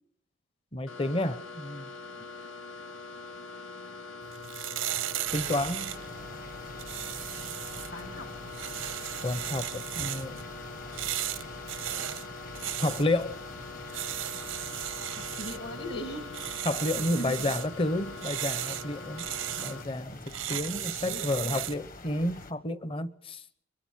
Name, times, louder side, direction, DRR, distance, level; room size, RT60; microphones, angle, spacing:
voice 1, 0.7-1.9 5.3-5.9 9.2-10.4 12.8-13.4 16.6-19.3 19.6-23.4, left 1 dB, 30° left, 0.9 m, -30 dB
sound 1, 0.9-19.8, left 3 dB, 85° left, 1.9 m, -44 dB
sound 2, 4.2-21.9, right 12 dB, 85° right, 0.8 m, -37 dB
sound 3, 5.3-22.5, left 2 dB, 45° left, 1.4 m, -46 dB
voice 2, 7.9-8.3 15.1-16.2 17.2-17.6 20.5-20.6 21.0-21.6, equal, 60° left, 2.5 m, -39 dB
23.0 x 22.5 x 6.4 m
head